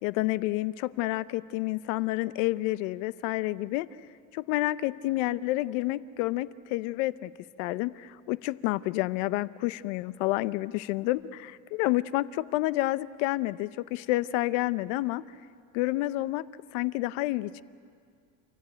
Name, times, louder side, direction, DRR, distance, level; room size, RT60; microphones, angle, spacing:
voice 1, 0.0-3.9 4.3-7.3 7.6-15.2 15.7-16.4 16.7-17.6, left 18 dB, 90° left, 16 dB, 0.7 m, -29 dB
29.5 x 14.5 x 9.0 m, 2.2 s
cardioid pair, 165°, 36 cm